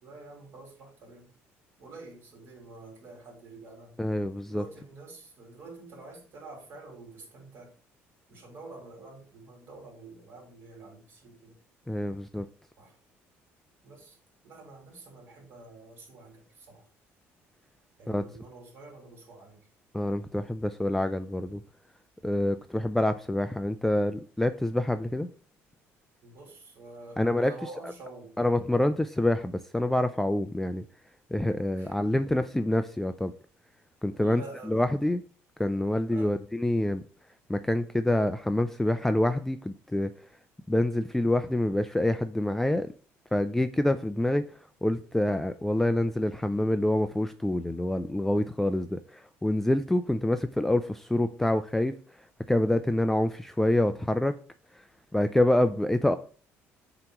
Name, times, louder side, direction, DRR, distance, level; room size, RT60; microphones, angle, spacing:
voice 1, 0.0-1.3 1.8-4.0 4.5-7.7 8.3-11.6 12.8-13.0 13.8-14.2 14.4-16.9 18.0-19.7 26.2-28.4 31.8-32.0 34.1-34.8 36.1-36.4, right 3 dB, 50° right, 2.8 m, -48 dB
voice 2, 4.0-4.6 11.9-12.5 18.1-18.2 19.9-21.6 22.2-25.3 27.2-27.5 27.8-27.9 28.4-30.8 31.3-33.3 34.0-35.2 35.6-37.0 37.5-40.1 40.7-42.9 43.3-44.4 44.8-51.9 52.5-54.3 55.1-56.1, left 1 dB, 5° left, 0.3 m, -26 dB
7.6 x 3.0 x 4.5 m
cardioid pair, 125°, 5 cm